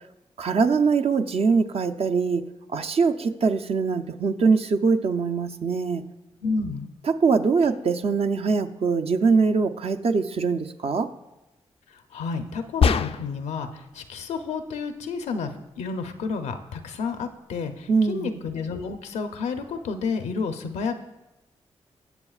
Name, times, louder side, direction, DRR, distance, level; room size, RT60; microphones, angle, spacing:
voice 1, 0.4-2.4 2.7-6.0 7.1-11.1 17.9-18.3, right 4 dB, 60° right, 7 dB, 0.7 m, -22 dB
voice 2, 6.4-6.9 12.1-15.5 15.8-20.9, left 4 dB, 90° left, 7 dB, 0.7 m, -30 dB
sound 1, 12.8-13.5, left 6 dB, 55° left, 0.4 m, -22 dB
18.0 x 7.0 x 2.4 m, 1.0 s
supercardioid pair, 50°, 11 cm